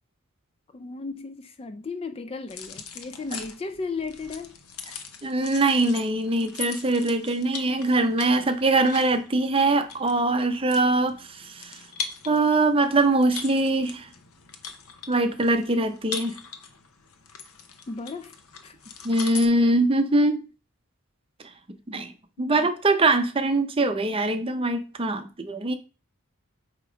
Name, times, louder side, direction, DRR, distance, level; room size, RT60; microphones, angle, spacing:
voice 1, 0.7-4.6 17.9-18.4 18.6-18.7 22.4-22.7, left 4 dB, 25° left, 0.3 m, -35 dB
sound 1, 2.5-19.5, left 6 dB, 80° left, 0.9 m, -41 dB
voice 2, 5.2-11.8 12.3-14.1 15.1-16.3 19.0-20.4 21.9-22.1 22.4-25.8, right 2 dB, 25° right, 0.6 m, -22 dB
8.2 x 2.9 x 5.0 m
head